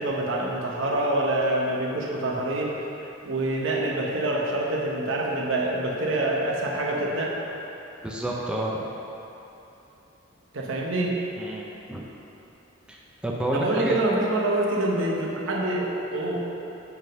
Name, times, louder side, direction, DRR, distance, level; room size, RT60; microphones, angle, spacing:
voice 1, 0.0-2.8 3.2-7.4 10.5-11.2 13.5-16.4, right 1 dB, 75° right, -3 dB, 1.0 m, -26 dB
voice 2, 8.0-8.8 11.4-11.6 11.9-12.0 12.9-14.0, right 1 dB, 5° right, -4 dB, 0.6 m, -29 dB
8.1 x 3.7 x 5.4 m, 2.9 s
head